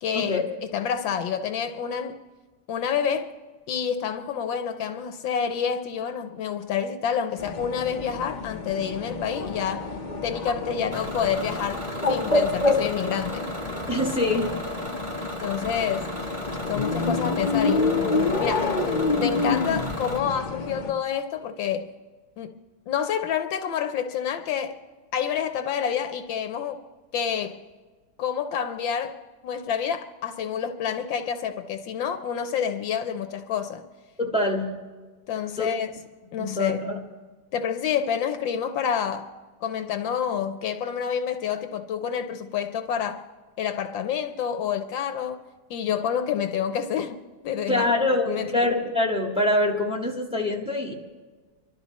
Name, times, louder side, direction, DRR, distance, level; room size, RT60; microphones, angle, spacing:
voice 1, 0.0-2.2 2.7-3.3 3.7-10.0 10.2-13.5 15.4-16.1 16.7-17.9 18.4-18.7 19.2-21.9 22.4-22.6 22.9-24.8 25.1-26.8 27.1-27.6 28.2-33.8 35.3-35.9 36.3-36.8 37.5-39.3 39.6-43.2 43.6-45.4 45.7-47.2 47.4-47.9 48.3-48.5, left 8 dB, 75° left, 1.4 m, -28 dB
sound 1, 7.4-20.9, left 4 dB, 45° left, 0.6 m, -29 dB
Bird, 8.6-14.2, left 2 dB, 25° left, 1.0 m, -29 dB
Bus / Engine, 10.9-20.2, equal, 20° right, 1.0 m, -36 dB
voice 2, 13.9-14.6 34.2-34.8 35.6-35.7 36.4-37.0 47.7-50.9, left 2 dB, 5° right, 1.5 m, -24 dB
26.5 x 12.5 x 4.1 m
omnidirectional pair, 2.2 m